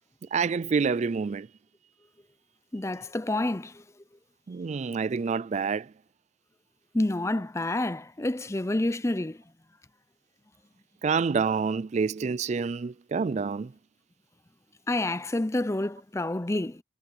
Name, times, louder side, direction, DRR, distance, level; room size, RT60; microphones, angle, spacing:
voice 1, 0.3-1.5 4.5-5.9 11.0-13.7, right 5 dB, 40° right, 0.3 m, -27 dB
voice 2, 2.7-3.8 6.9-9.4 14.9-16.8, left 1 dB, 15° left, 0.6 m, -28 dB
head